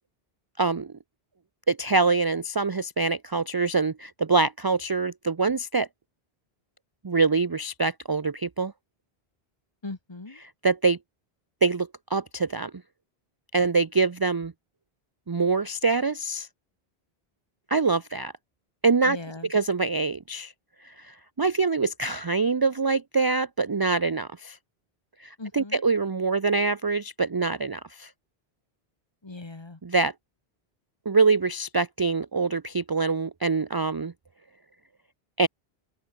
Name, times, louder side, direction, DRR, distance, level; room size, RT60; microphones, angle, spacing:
voice 1, 0.6-0.9 1.7-5.9 7.0-8.7 10.6-11.0 11.6-12.7 13.5-14.5 15.3-16.5 17.7-18.3 18.8-19.2 19.5-20.5 20.8-24.6 25.2-28.1 29.8-30.1 31.1-34.1 35.4-35.5, right 4 dB, 30° right, 0.4 m, -24 dB
voice 2, 9.8-10.4 19.0-19.5 25.4-25.8 29.2-29.8, left 3 dB, 25° left, 1.2 m, -39 dB
open air
omnidirectional pair, 1.0 m